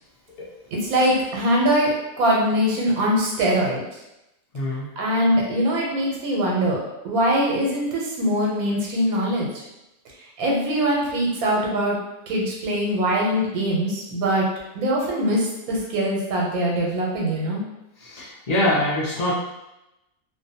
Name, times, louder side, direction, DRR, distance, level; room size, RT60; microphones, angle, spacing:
voice 1, 0.7-3.8 5.0-9.5 10.4-12.0 12.3-14.4 14.7-17.6, equal, 90° right, -2 dB, 1.1 m, -22 dB
voice 2, 4.5-4.9 18.0-19.3, left 1 dB, 55° left, -5 dB, 0.4 m, -24 dB
2.5 x 2.1 x 2.7 m, 0.92 s
omnidirectional pair, 1.5 m